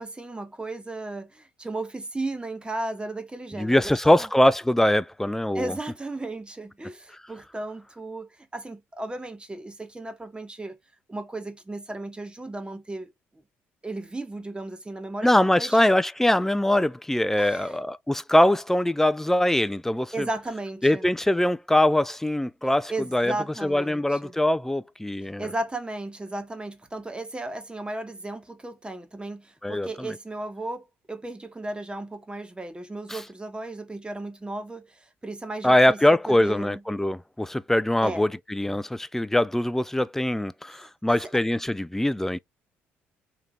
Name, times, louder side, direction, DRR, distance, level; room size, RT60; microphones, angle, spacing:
voice 1, 0.0-4.3 5.5-10.8 11.1-13.1 13.8-15.3 15.6-15.8 17.4-17.8 20.1-21.0 22.9-24.3 25.3-36.0 36.3-36.8 38.0-38.2 40.8-41.2, right 2 dB, 15° right, 1.2 m, -35 dB
voice 2, 3.6-5.7 15.2-20.3 20.8-23.4 23.6-25.5 29.6-30.1 33.1-33.2 35.6-42.4, left 1 dB, 5° left, 0.4 m, -22 dB
3.4 x 2.8 x 3.7 m
hypercardioid pair, 55°, 6 cm